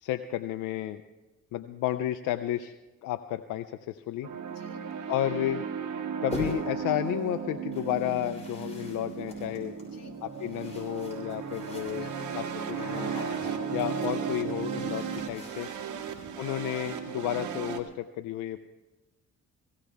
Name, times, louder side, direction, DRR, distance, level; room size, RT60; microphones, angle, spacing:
voice 1, 0.0-1.0 1.5-2.7 3.0-4.3 5.1-5.6 6.2-9.7 10.2-13.2 13.7-15.7 16.4-18.6, left 13 dB, 85° left, 10 dB, 0.6 m, -32 dB
sound 1, 4.2-17.8, right 7 dB, 75° right, 1.6 m, -35 dB
voice 2, 4.5-4.8 9.8-10.2 12.0-12.3 13.4-13.7 15.8-16.0, left 6 dB, 60° left, 1 dB, 2.2 m, -51 dB
sound 2, 6.3-6.9 7.7-16.3, equal, 20° left, 6.2 m, -43 dB
18.0 x 16.5 x 3.5 m, 1.1 s
cardioid pair, 90°, 30 cm